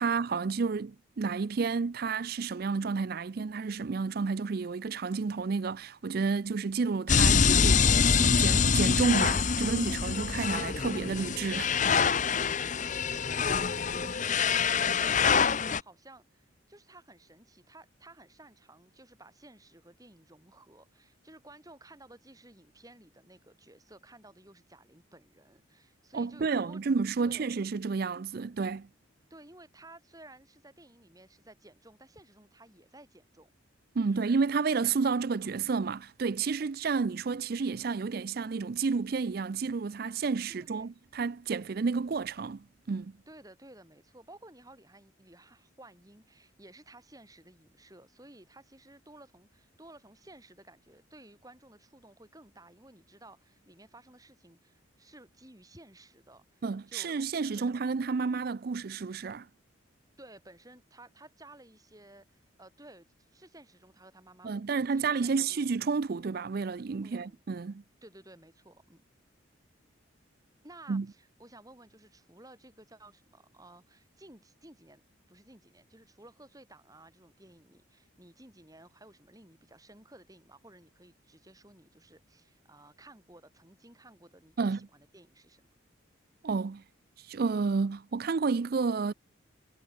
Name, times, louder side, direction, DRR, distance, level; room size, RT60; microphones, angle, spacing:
voice 1, 0.0-11.7 26.1-28.9 34.0-43.1 56.6-59.5 64.4-67.8 70.9-71.1 84.6-84.8 86.4-86.8 87.3-89.1, right 4 dB, 50° right, 0.4 m, -30 dB
sound 1, 7.1-15.8, left 6 dB, 35° left, 0.7 m, -25 dB
voice 2, 12.2-26.8 27.2-27.5 29.3-33.5 34.0-34.3 40.5-40.9 43.3-57.1 57.5-57.8 60.2-65.9 67.0-67.4 68.0-69.0 70.6-85.7, right 1 dB, 15° right, 6.6 m, -55 dB
head